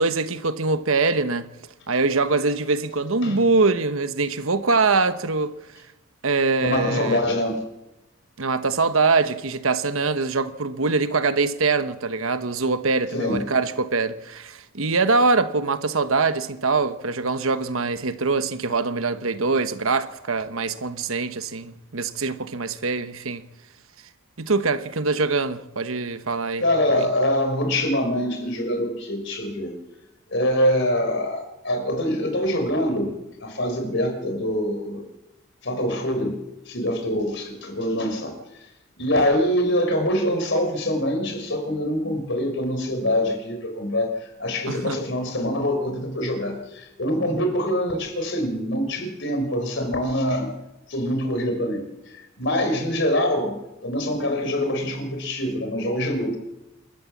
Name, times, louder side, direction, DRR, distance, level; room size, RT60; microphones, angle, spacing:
voice 1, 0.0-1.5 1.9-5.6 6.2-7.2 8.4-23.4 24.4-26.6 26.9-27.1 44.7-45.0, right 3 dB, 75° right, 1.2 m, -23 dB
voice 2, 6.6-7.6 13.1-13.4 26.6-29.8 30.3-33.2 33.4-35.0 35.6-36.4 36.7-38.3 39.0-50.5 50.9-51.8 52.1-56.4, left 1 dB, 55° left, 4.4 m, -24 dB
29.0 x 13.0 x 7.3 m
head